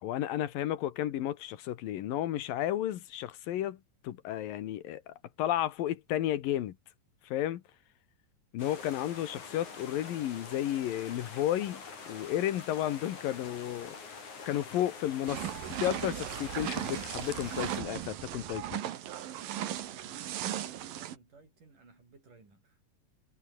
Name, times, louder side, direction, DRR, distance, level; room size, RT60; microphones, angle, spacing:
voice 1, 0.0-6.8 7.2-7.6 8.5-14.0 14.5-15.5 15.8-18.8, left 12 dB, 85° left, 3.1 m, -33 dB
sound 1, 8.6-17.8, left 5 dB, 60° left, 6.2 m, -46 dB
sound 2, 15.3-21.2, right 11 dB, 80° right, 3.3 m, -37 dB
voice 2, 19.2-22.8, right 3 dB, 65° right, 9.1 m, -58 dB
omnidirectional pair, 4.0 m